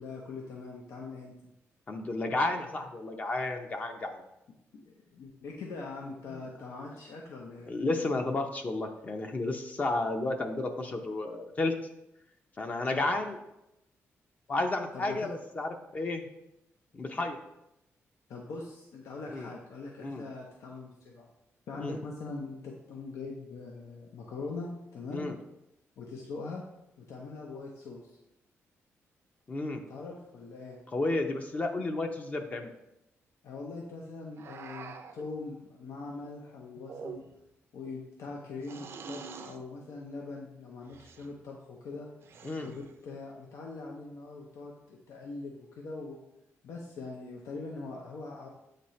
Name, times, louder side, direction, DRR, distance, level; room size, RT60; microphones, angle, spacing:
voice 1, 0.0-1.3 4.7-7.7 12.9-13.2 14.9-15.3 18.3-21.3 21.7-25.3 26.0-26.6 27.0-28.1 29.9-30.8 33.4-37.2 37.7-42.1 42.6-46.2 46.6-48.5, left 3 dB, 85° left, -1 dB, 0.8 m, -42 dB
voice 2, 1.9-4.2 6.3-6.5 7.7-11.7 12.6-13.4 14.5-16.3 16.9-17.4 19.3-19.5 20.0-20.3 21.8-22.0 25.1-25.4 29.5-29.8 30.9-32.7 42.4-42.7, left 2 dB, 30° left, 5 dB, 0.6 m, -32 dB
sound 1, 34.4-35.3 36.8-37.5 38.6-39.6 40.9-41.3 42.2-42.9, right 5 dB, 55° right, 0.5 m, -45 dB
7.8 x 4.2 x 3.2 m, 0.87 s
cardioid pair, 135°, 5 cm